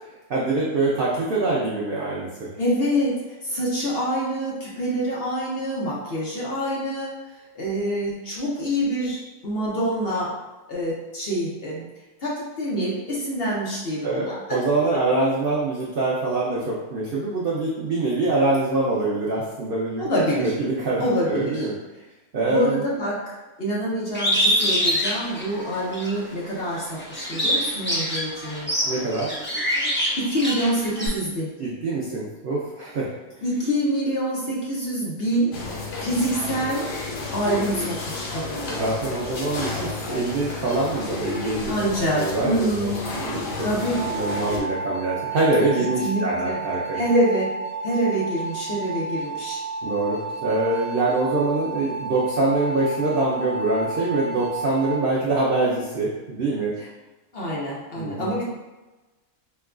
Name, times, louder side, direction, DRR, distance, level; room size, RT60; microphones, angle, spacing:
voice 1, 0.3-2.5 14.0-20.1 20.4-21.0 21.3-21.7 22.3-22.8 28.9-29.3 31.6-33.4 38.7-43.5 43.9-47.0 49.8-56.7 58.0-58.3, right 2 dB, 90° right, -5 dB, 0.4 m, -24 dB
voice 2, 2.6-3.1 3.4-7.1 7.5-10.3 10.7-11.9 12.2-14.4 20.0-20.5 21.0-21.7 22.5-28.7 30.2-31.5 33.4-36.9 37.3-38.6 41.7-43.1 43.6-44.0 46.0-46.6 46.9-47.5 47.8-49.6 57.3-58.5, equal, 50° left, -6 dB, 0.8 m, -26 dB
Bird, 24.1-26.1 26.6-31.1, equal, 15° left, 0.4 m, -24 dB
sound 1, 35.5-44.6, left 3 dB, 85° left, 1.2 m, -31 dB
sound 2, 43.8-55.0, right 3 dB, 35° left, 1.4 m, -32 dB
4.4 x 2.2 x 2.3 m, 1.1 s
omnidirectional pair, 1.6 m